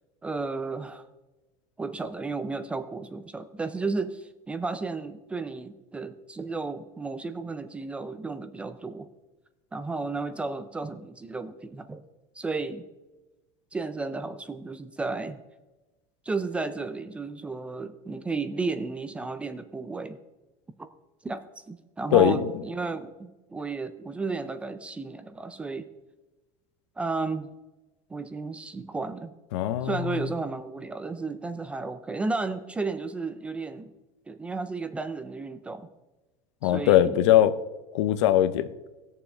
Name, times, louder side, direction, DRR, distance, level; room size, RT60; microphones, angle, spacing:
voice 1, 0.2-1.1 1.8-9.1 9.7-12.0 12.4-12.8 13.7-15.4 16.3-20.2 21.2-25.9 27.0-27.5 28.1-29.3 29.8-33.9 34.3-35.9 36.6-37.2, right 3 dB, 10° right, 11 dB, 0.3 m, -33 dB
voice 2, 29.5-30.2 36.6-37.5 37.9-38.7, left 12 dB, 85° left, 12 dB, 0.8 m, -21 dB
18.5 x 7.0 x 3.3 m, 1.1 s
cardioid pair, 175°, 15 cm